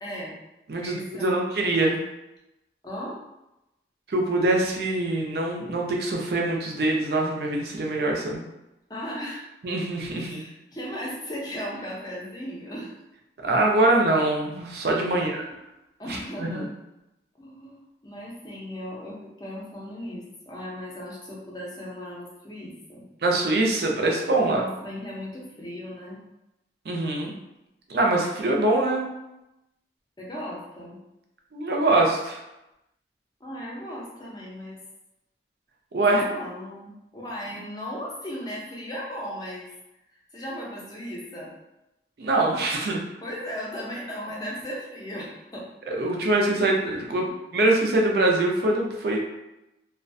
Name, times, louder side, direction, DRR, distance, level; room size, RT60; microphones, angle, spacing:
voice 1, 0.0-0.3 0.8-1.5 2.8-3.2 8.9-9.4 10.1-13.0 15.1-15.6 16.0-16.7 17.4-23.1 24.4-26.2 30.2-31.0 33.4-34.8 36.1-39.7 40.3-41.5 43.2-45.7 47.3-47.4, equal, 20° left, -4 dB, 0.5 m, -36 dB
voice 2, 0.7-2.0 4.1-8.4 9.6-10.4 13.4-15.4 16.1-16.7 23.2-24.6 26.9-27.3 27.9-29.1 31.5-32.4 35.9-36.3 42.2-43.0 45.9-47.3 47.5-49.2, right 2 dB, 65° right, 0 dB, 0.4 m, -23 dB
2.4 x 2.1 x 2.5 m, 0.92 s
head